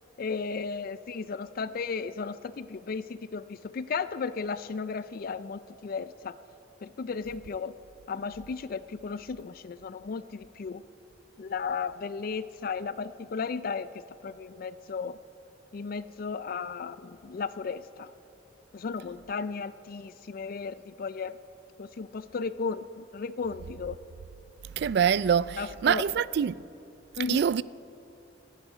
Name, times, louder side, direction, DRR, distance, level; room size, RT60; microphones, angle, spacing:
voice 1, 0.2-6.4 6.8-7.7 8.1-10.8 11.4-15.2 15.7-18.1 18.7-21.4 21.8-24.0 25.6-26.1 27.2-27.5, left 5 dB, 50° left, 0.4 m, -35 dB
voice 2, 24.8-26.6 27.3-27.6, right 8 dB, 60° right, 0.3 m, -25 dB
28.0 x 10.0 x 5.0 m
head